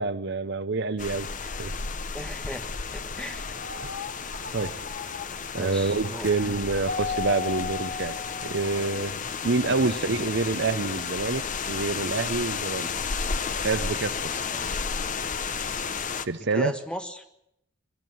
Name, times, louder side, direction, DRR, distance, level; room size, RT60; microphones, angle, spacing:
voice 1, 0.0-1.7 3.8-3.9 4.5-4.8 5.5-8.2 8.4-12.9 13.6-14.4 16.2-16.7, right 3 dB, 60° right, 14 dB, 0.8 m, -27 dB
sound 1, 1.0-16.3, left 5 dB, 40° left, 0.9 m, -33 dB
voice 2, 2.1-2.7 2.9-3.5 5.5-6.3 9.7-10.1 14.5-14.8 16.4-17.3, equal, 5° left, 7 dB, 1.5 m, -37 dB
sound 2, 3.3-5.3 6.0-6.9 8.7-8.9, left 5 dB, 60° left, 1.9 m, -41 dB
Keyboard (musical), 6.9-9.1, left 5 dB, 80° left, 4.0 m, -33 dB
22.0 x 13.0 x 9.3 m, 0.78 s
head